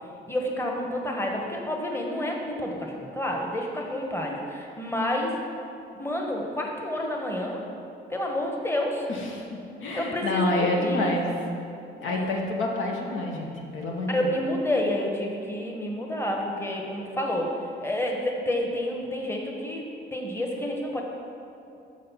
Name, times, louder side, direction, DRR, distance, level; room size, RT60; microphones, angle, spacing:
voice 1, 0.3-5.4 6.0-7.6 8.1-9.1 9.9-11.0 12.1-12.3 14.1-17.5 17.8-19.8 20.1-21.0, left 1 dB, 10° left, 0 dB, 1.1 m, -29 dB
voice 2, 9.1-9.5 9.8-11.3 12.0-14.3, left 2 dB, 80° left, 0 dB, 1.2 m, -28 dB
6.5 x 6.5 x 5.7 m, 2.8 s
cardioid pair, 90°, 20 cm